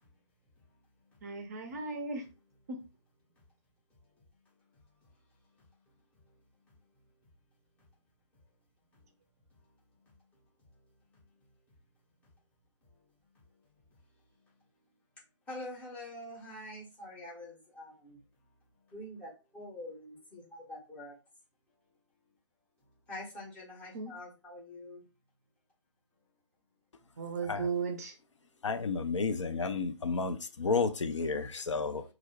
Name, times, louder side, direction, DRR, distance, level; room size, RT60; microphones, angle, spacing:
voice 1, 1.2-2.2 2.7-2.8 23.9-24.1 27.2-28.1, right 4 dB, 30° right, 0.5 m, -36 dB
voice 2, 15.5-18.2 18.9-21.1 23.1-25.0, left 1 dB, 10° left, 0.6 m, -46 dB
voice 3, 28.6-32.0, left 4 dB, 70° left, 0.4 m, -31 dB
2.3 x 2.0 x 3.1 m
figure-of-eight pair, 140°, 16 cm